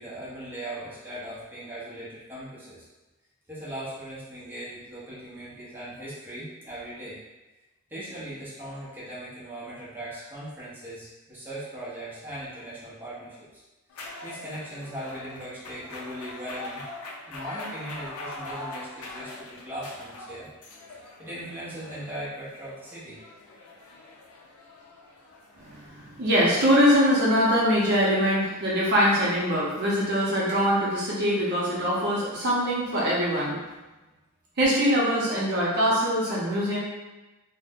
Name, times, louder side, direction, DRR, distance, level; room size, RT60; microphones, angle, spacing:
voice 1, 0.0-2.9 3.5-7.2 7.9-13.6 13.9-16.9 17.3-20.5 20.9-23.2, right 1 dB, 10° right, -10 dB, 0.8 m, -39 dB
sound 1, 13.9-25.9, left 2 dB, 85° left, 0.4 m, -42 dB
voice 2, 25.6-33.6 34.6-36.8, equal, 50° right, -6 dB, 0.7 m, -23 dB
2.5 x 2.1 x 3.5 m, 1.1 s
head